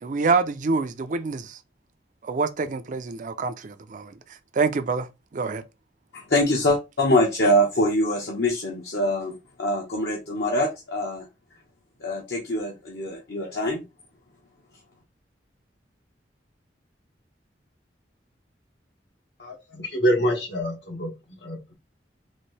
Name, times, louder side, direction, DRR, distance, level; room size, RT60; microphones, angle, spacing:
voice 1, 0.0-1.6 2.2-4.1 4.5-5.1 5.3-5.6, right 4 dB, 45° right, 0.4 m, -26 dB
voice 2, 6.1-11.2 12.0-13.8, left 1 dB, 65° left, 0.9 m, -24 dB
voice 3, 19.4-21.1 21.4-21.7, equal, 85° left, 1.6 m, -26 dB
4.1 x 2.6 x 3.2 m
head